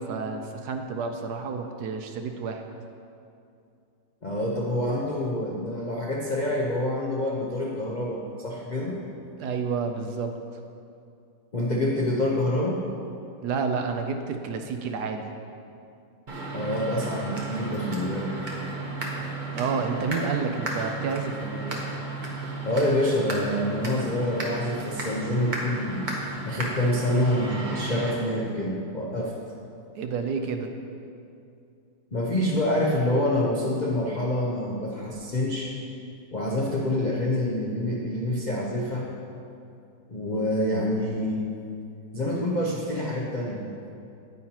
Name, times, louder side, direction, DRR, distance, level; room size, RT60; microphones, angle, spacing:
voice 1, 0.0-2.6 9.4-10.3 13.4-15.3 19.5-21.8 29.9-30.7, right 5 dB, 70° right, 5 dB, 1.0 m, -30 dB
voice 2, 4.2-9.0 11.5-12.8 16.5-18.3 22.6-26.1 26.4-29.3 32.1-35.7 36.3-39.1 40.1-41.4 42.1-43.7, left 1 dB, 70° left, -3 dB, 0.4 m, -27 dB
sound 1, 16.3-28.1, right 2 dB, 35° right, 0.9 m, -34 dB
9.4 x 9.1 x 2.9 m, 2.5 s
omnidirectional pair, 2.1 m